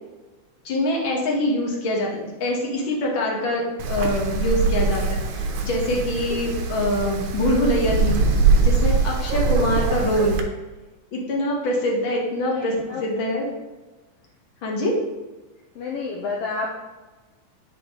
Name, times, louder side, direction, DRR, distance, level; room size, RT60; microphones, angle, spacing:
voice 1, 0.6-8.2 8.6-10.4 11.1-12.7 13.0-13.5 14.6-15.0, left 1 dB, 50° left, -2 dB, 1.9 m, -24 dB
Wind, 3.8-10.4, right 4 dB, 80° right, 2.1 m, -22 dB
voice 2, 12.5-13.0 15.7-16.7, left 4 dB, 70° left, -1 dB, 1.6 m, -29 dB
9.1 x 4.5 x 3.7 m, 1.2 s
omnidirectional pair, 3.4 m